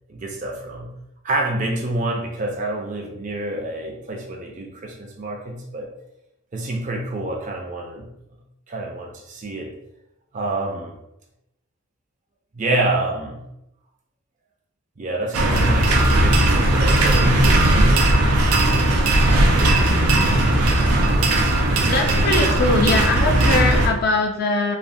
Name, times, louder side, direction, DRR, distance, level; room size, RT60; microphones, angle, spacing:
voice 1, 0.1-0.9 1.2-5.9 6.5-8.1 8.7-9.7 10.3-11.0 12.5-13.4 15.0-17.6, right 2 dB, 35° right, 1 dB, 0.4 m, -27 dB
sound 1, 15.3-23.9, right 1 dB, 90° right, 0.5 m, -17 dB
voice 2, 21.9-24.8, left 3 dB, 45° left, 3 dB, 0.4 m, -21 dB
3.3 x 2.1 x 2.6 m, 0.85 s
head